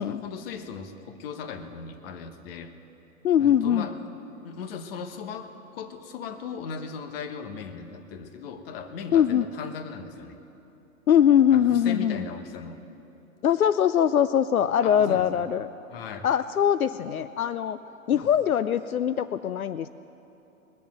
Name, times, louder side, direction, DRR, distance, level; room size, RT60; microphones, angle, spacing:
voice 1, 0.0-2.7 3.4-3.9 4.4-10.4 11.5-12.8 14.8-15.4 15.9-16.3 18.1-18.3, left 5 dB, 45° left, 8 dB, 1.3 m, -38 dB
voice 2, 3.2-3.9 9.1-9.4 11.1-12.2 13.4-15.7 16.2-17.8 18.1-19.9, left 9 dB, 85° left, 13 dB, 0.5 m, -22 dB
21.0 x 7.2 x 7.6 m, 3.0 s
figure-of-eight pair, 110°, 42 cm